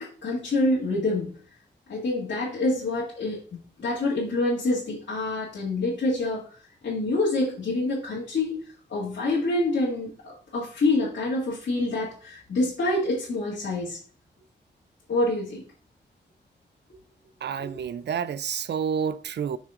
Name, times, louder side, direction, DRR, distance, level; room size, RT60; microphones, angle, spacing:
voice 1, 0.0-1.3 1.9-6.4 6.8-8.6 8.9-14.0 15.1-15.7 17.6-17.7, left 2 dB, 90° left, 2.0 m, -26 dB
voice 2, 17.4-19.6, right 7 dB, 70° right, 0.4 m, -29 dB
6.6 x 6.2 x 2.5 m
wide cardioid pair, 145°, 19 cm